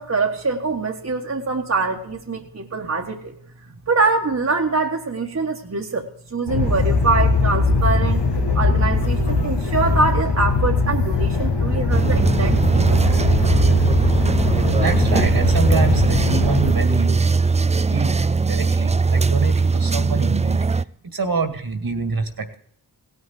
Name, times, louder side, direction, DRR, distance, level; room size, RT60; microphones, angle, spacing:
voice 1, 0.0-3.3 3.9-8.2 8.5-13.0, right 3 dB, 40° right, 0 dB, 1.5 m, -24 dB
sound 1, 6.5-16.7, left 3 dB, 85° left, 1.9 m, -20 dB
sound 2, 11.9-20.8, right 4 dB, 15° right, 0.4 m, -19 dB
voice 2, 14.8-17.2 17.7-20.8 21.1-22.6, right 4 dB, 60° right, 8 dB, 2.1 m, -26 dB
17.0 x 6.4 x 7.5 m, 0.68 s
cardioid pair, 50°, 41 cm